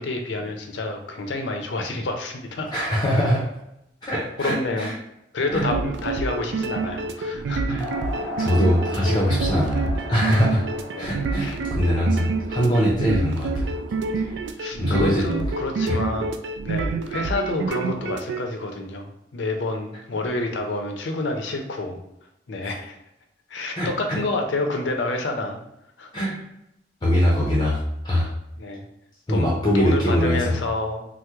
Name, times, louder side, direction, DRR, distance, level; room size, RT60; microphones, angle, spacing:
voice 1, 0.0-2.8 4.4-4.9 5.3-7.8 10.9-12.0 14.6-16.3 16.6-22.0 22.5-23.0 23.5-25.6 26.0-26.1 28.6-28.8 29.3-31.1, left 2 dB, 85° left, 4 dB, 0.5 m, -28 dB
voice 2, 2.7-3.5 4.0-4.9 5.5-5.7 7.7-7.9 8.4-10.6 11.0-13.8 14.1-14.4 14.8-15.2 15.9-16.0 22.6-22.7 23.8-24.2 26.1-26.4 27.0-28.3 29.3-30.6, equal, 25° left, -4 dB, 0.5 m, -22 dB
sound 1, 5.5-18.4, right 3 dB, 75° right, 0.3 m, -28 dB
sound 2, 7.8-13.7, left 1 dB, 5° left, 0.8 m, -37 dB
2.9 x 2.0 x 3.4 m, 0.82 s
head